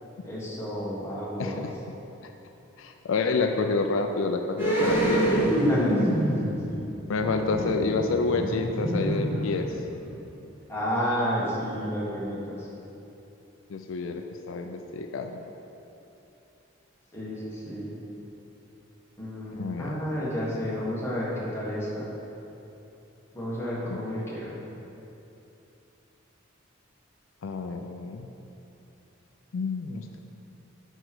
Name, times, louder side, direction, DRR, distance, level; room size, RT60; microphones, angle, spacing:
voice 1, 0.2-1.7 5.6-6.8 10.7-12.7 17.1-17.9 19.2-22.1 23.3-24.5, equal, 15° left, -7 dB, 1.6 m, -31 dB
voice 2, 1.4-1.7 2.2-2.3 2.8-5.3 7.1-9.8 13.7-15.4 19.5-20.0 23.9-24.3 27.4-28.3 29.5-30.2, left 3 dB, 80° left, 5 dB, 0.4 m, -29 dB
sound 1, 4.6-10.0 10.3-10.4, equal, 10° right, 1.8 m, -26 dB
6.7 x 4.5 x 6.1 m, 2.9 s
head